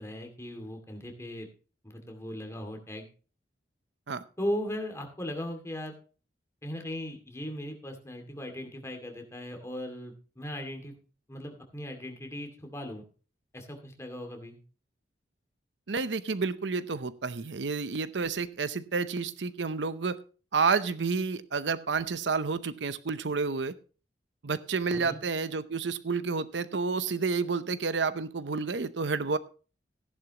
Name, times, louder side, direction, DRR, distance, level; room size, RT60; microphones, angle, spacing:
voice 1, 0.0-1.5 1.8-3.1 4.4-5.9 6.6-10.9 11.3-13.1 13.5-14.6 24.9-25.2, equal, 15° left, 4 dB, 2.3 m, -38 dB
voice 2, 15.9-20.2 20.5-23.7 24.4-29.4, right 4 dB, 85° right, 14 dB, 0.7 m, -30 dB
15.5 x 10.5 x 2.9 m, 0.36 s
head